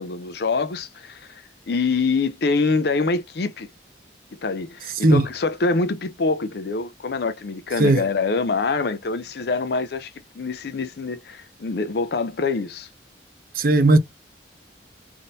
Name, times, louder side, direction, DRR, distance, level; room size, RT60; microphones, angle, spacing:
voice 1, 0.0-3.7 4.3-12.9, left 4 dB, 55° left, 0.5 m, -25 dB
voice 2, 13.6-14.0, right 2 dB, 50° right, 0.6 m, -16 dB
3.6 x 2.6 x 4.0 m
head